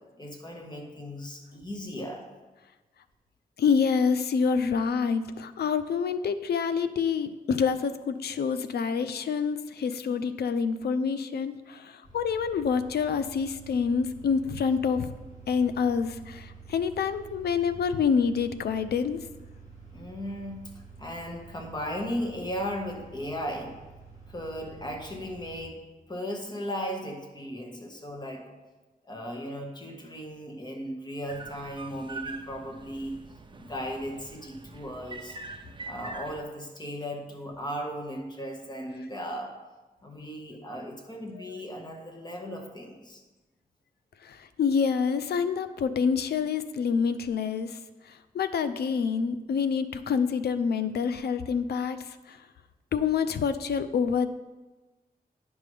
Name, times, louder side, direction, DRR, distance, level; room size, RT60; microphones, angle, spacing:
voice 1, 0.2-2.2 19.9-20.7 21.0-23.8 24.3-25.8 26.1-28.4 29.0-33.2 33.6-35.4 35.9-39.5 40.0-43.2, equal, 25° left, 2 dB, 1.4 m, -36 dB
voice 2, 3.6-15.1 15.5-19.2 41.4-41.6 44.2-47.8 48.1-52.4 52.9-54.3, left 6 dB, 85° left, 12 dB, 0.4 m, -27 dB
sound 1, 12.0-25.6, right 5 dB, 45° left, 2.2 m, -49 dB
sound 2, 31.3-36.4, right 3 dB, 30° right, 0.6 m, -43 dB
9.3 x 5.3 x 3.3 m, 1.2 s
cardioid pair, 65°, 16 cm